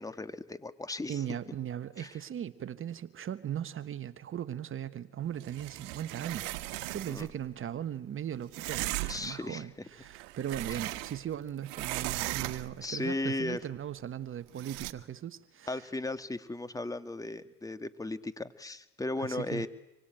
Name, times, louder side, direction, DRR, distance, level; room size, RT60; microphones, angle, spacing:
voice 1, 0.0-1.2 2.0-2.1 7.1-7.3 9.1-9.7 12.8-13.6 15.7-19.7, left 2 dB, 10° left, 1.8 m, -36 dB
voice 2, 1.1-6.6 6.9-15.8 19.2-19.7, right 10 dB, 35° right, 1.3 m, -38 dB
sound 1, 5.4-7.3 8.5-9.4 10.0-11.4 11.6-12.9 14.6-14.9, right 20 dB, 70° right, 1.6 m, -37 dB
26.5 x 23.5 x 9.1 m
supercardioid pair, 90°, 35 cm